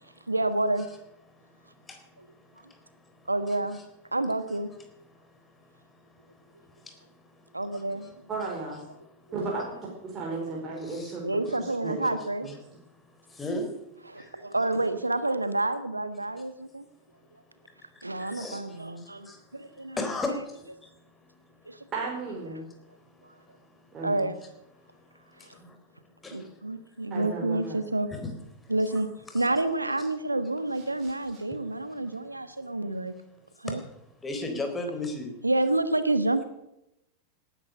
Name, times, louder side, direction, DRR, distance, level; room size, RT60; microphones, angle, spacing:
voice 1, 0.3-0.9 2.2-2.3 3.3-3.8 4.1-4.7 7.5-8.1 11.2-12.5 14.1-16.8 18.0-20.0 21.6-21.9 24.0-24.4 25.4-25.5 26.3-28.1 28.7-29.1 29.3-33.1 33.6-33.8 35.4-36.4, right 2 dB, 85° right, 11 dB, 1.3 m, -28 dB
voice 2, 8.3-8.8 9.3-9.7 10.0-11.2 11.8-12.1 12.4-12.5 21.9-22.6 23.9-24.3 27.1-27.8 31.0-31.1, right 3 dB, 25° right, -3 dB, 4.7 m, -34 dB
voice 3, 10.9-11.2 13.4-13.7 18.3-18.6 19.3-19.4 20.0-20.3 26.2-26.4 28.1-28.3 29.3-29.4 33.7-33.8 34.2-35.3, left 2 dB, 15° left, 5 dB, 3.9 m, -32 dB
18.5 x 11.0 x 6.7 m, 0.87 s
figure-of-eight pair, 90°, 0 cm